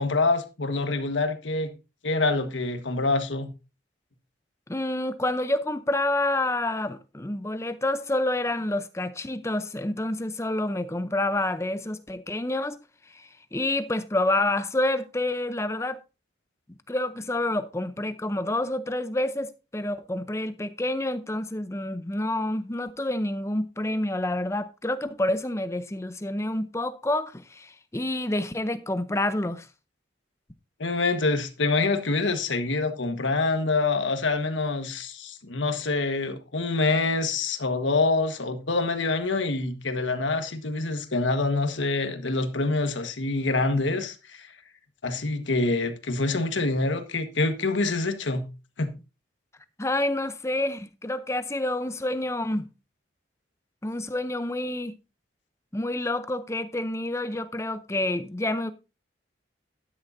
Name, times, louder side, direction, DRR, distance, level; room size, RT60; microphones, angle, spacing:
voice 1, 0.0-1.7 2.0-3.5 30.8-44.5 45.0-48.5 48.8-48.9, left 3 dB, 85° left, 1.4 m, -26 dB
voice 2, 4.7-12.8 13.1-16.0 16.7-29.7 49.8-52.7 53.8-54.9 55.7-58.7, left 1 dB, 15° left, 0.6 m, -28 dB
12.5 x 9.9 x 2.6 m
head